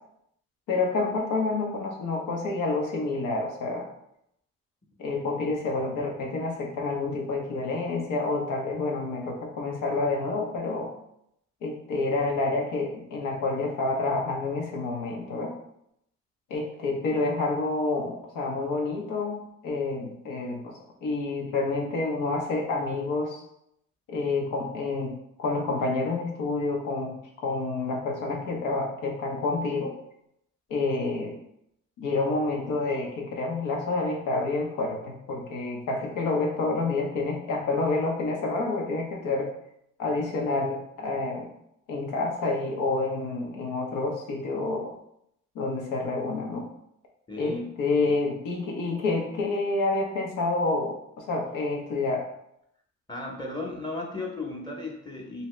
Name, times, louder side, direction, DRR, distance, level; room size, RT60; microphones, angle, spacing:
voice 1, 0.7-3.9 5.0-10.9 11.6-15.5 16.5-23.4 24.1-27.1 27.4-29.9 30.7-31.4 32.0-39.5 40.0-41.5 41.9-44.9 45.5-46.7 47.4-52.2, left 3 dB, 90° left, 0 dB, 0.9 m, -28 dB
voice 2, 47.3-47.7 53.1-55.5, left 2 dB, 15° left, 0 dB, 0.8 m, -35 dB
2.8 x 2.7 x 3.2 m, 0.76 s
cardioid pair, 90°, 30 cm